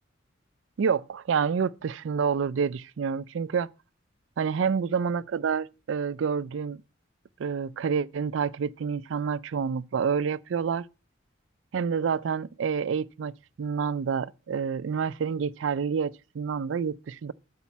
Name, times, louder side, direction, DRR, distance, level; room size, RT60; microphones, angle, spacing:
voice 1, 0.8-3.7 4.4-6.8 7.4-10.9 11.7-17.3, right 6 dB, 70° right, 0.4 m, -28 dB
8.4 x 4.4 x 7.1 m
head